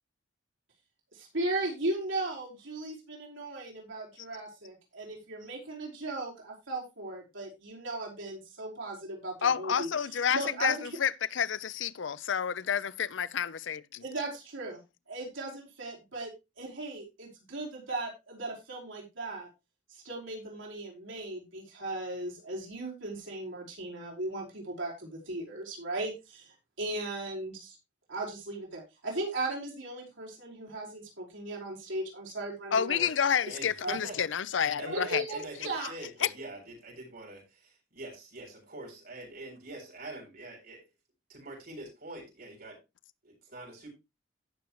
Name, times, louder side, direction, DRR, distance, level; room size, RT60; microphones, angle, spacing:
voice 1, 1.1-9.9 10.3-10.7 14.0-14.8 15.1-19.5 19.9-27.8 28.1-33.0 33.8-34.0 34.9-35.9, right 2 dB, 80° right, 4.8 m, -37 dB
voice 2, 9.4-14.0 32.7-35.2 36.2-36.3, left 7 dB, 70° left, 0.6 m, -29 dB
voice 3, 33.4-34.2 34.8-40.8 41.3-42.8 43.2-43.9, right 2 dB, 55° right, 7.4 m, -45 dB
16.0 x 6.5 x 3.1 m
head